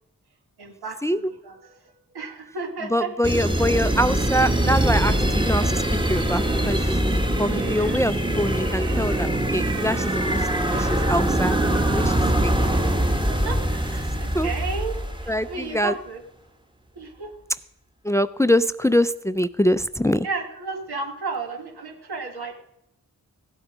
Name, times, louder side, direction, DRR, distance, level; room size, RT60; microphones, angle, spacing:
voice 1, 0.6-1.7 2.1-3.1 7.5-8.0 13.4-16.2 16.9-17.3 20.2-22.6, right 4 dB, 90° right, 3 dB, 1.6 m, -33 dB
voice 2, 2.9-5.8 6.1-12.1 12.4-12.5 14.3-14.5 15.3-15.9 18.0-20.3, equal, 10° left, 15 dB, 0.4 m, -24 dB
sound 1, 3.2-15.6, right 1 dB, 15° right, 1.1 m, -23 dB
sound 2, 7.3-16.1, right 2 dB, 55° right, 2.9 m, -48 dB
15.5 x 8.0 x 4.9 m, 0.82 s
cardioid pair, 45°, 37 cm